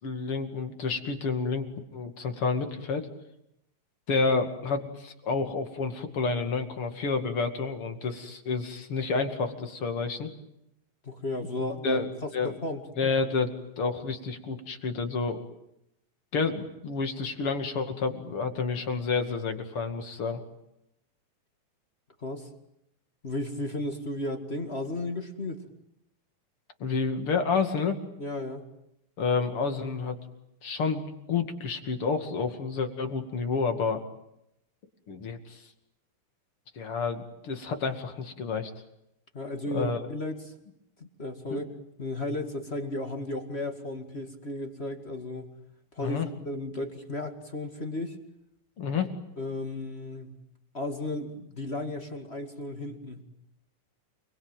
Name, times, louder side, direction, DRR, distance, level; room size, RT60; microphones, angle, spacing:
voice 1, 0.0-1.7 1.9-3.1 4.1-10.3 11.8-12.5 13.0-15.4 16.3-20.4 26.8-28.0 29.2-30.2 30.6-34.0 35.1-35.6 36.7-38.7 39.7-40.0 41.5-41.6 46.0-46.3 48.8-49.1, left 4 dB, 40° left, 6 dB, 2.8 m, -29 dB
voice 2, 11.0-12.8 22.2-22.5 23.2-25.6 28.2-28.6 39.3-40.5 41.0-41.7 42.0-45.5 45.9-46.2 46.4-48.2 49.4-50.4 50.7-53.2, left 1 dB, 25° left, 6 dB, 1.6 m, -34 dB
29.5 x 21.5 x 9.1 m, 0.81 s
omnidirectional pair, 4.2 m